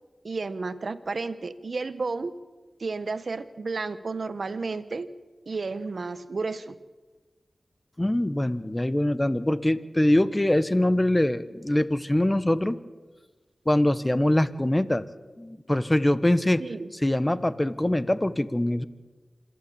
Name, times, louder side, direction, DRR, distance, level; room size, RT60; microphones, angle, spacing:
voice 1, 0.2-2.3 2.8-5.1 5.5-6.7 16.6-16.9, right 3 dB, 65° right, 13 dB, 1.1 m, -32 dB
voice 2, 8.0-12.8 13.7-15.0 15.4-16.7 17.0-18.8, left 1 dB, 20° left, 14 dB, 1.1 m, -23 dB
26.5 x 11.5 x 8.7 m, 1.3 s
cardioid pair, 45°, 0 cm